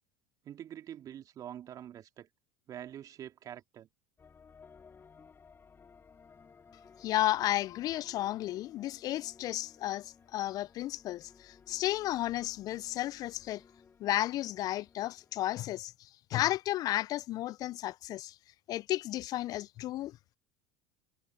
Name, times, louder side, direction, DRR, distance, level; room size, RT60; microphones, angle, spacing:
voice 1, 0.4-2.3 2.7-3.9, right 10 dB, 45° right, 2.9 m, -45 dB
sound 1, 4.2-15.5, left 5 dB, 25° left, 4.6 m, -59 dB
voice 2, 7.0-13.6 14.0-18.4 18.7-20.2, left 15 dB, 45° left, 0.4 m, -33 dB
hypercardioid pair, 80°, 9 cm